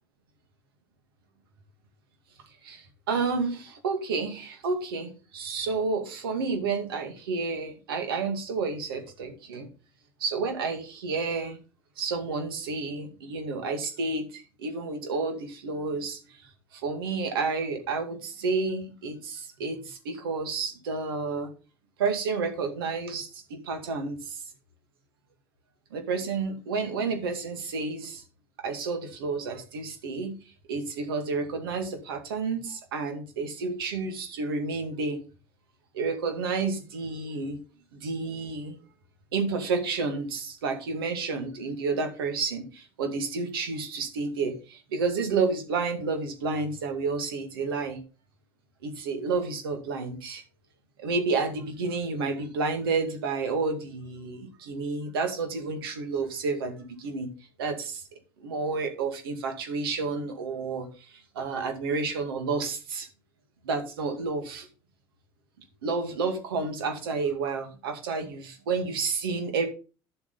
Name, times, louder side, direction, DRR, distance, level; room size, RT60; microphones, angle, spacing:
voice 1, 2.6-9.7 10.2-11.6 12.0-16.4 16.7-21.5 22.0-24.4 25.9-28.2 28.6-30.4 30.7-35.2 35.9-37.6 37.9-38.8 39.3-48.0 48.8-50.4 51.0-57.3 57.6-58.0 58.4-63.1 63.6-64.7 65.8-69.7, right 4 dB, 80° right, 6 dB, 2.3 m, -30 dB
11.5 x 7.6 x 4.1 m, 0.34 s
hypercardioid pair, 70°, 12 cm